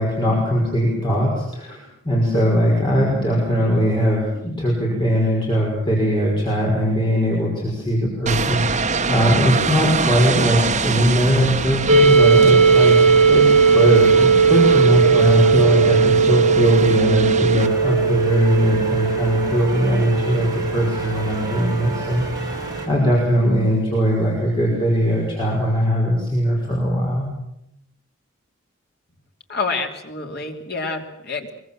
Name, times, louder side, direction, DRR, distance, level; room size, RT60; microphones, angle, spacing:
voice 1, 0.0-13.0 13.3-27.3, equal, 25° left, -3 dB, 5.5 m, -20 dB
sound 1, 8.3-17.7, right 4 dB, 35° right, 1.2 m, -25 dB
sound 2, 11.9-23.6, right 5 dB, 65° right, 4.1 m, -17 dB
sound 3, 17.6-22.9, right 1 dB, 20° right, 4.2 m, -32 dB
voice 2, 29.5-31.5, left 4 dB, 50° left, 3 dB, 3.1 m, -27 dB
24.0 x 23.0 x 7.5 m, 0.82 s
head